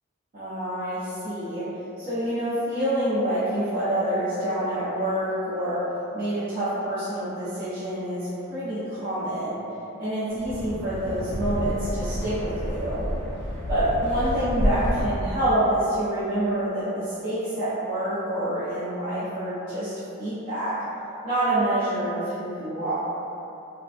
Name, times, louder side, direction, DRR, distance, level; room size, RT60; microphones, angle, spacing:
voice 1, 0.3-1.7 2.0-5.8 6.1-9.6 10.0-13.0 13.7-19.9 20.2-20.8 21.2-22.9, right 1 dB, 40° right, -15 dB, 0.6 m, -27 dB
Wind, 10.3-15.4, equal, 80° left, 0.6 m, -29 dB
2.4 x 2.3 x 2.3 m, 2.8 s
head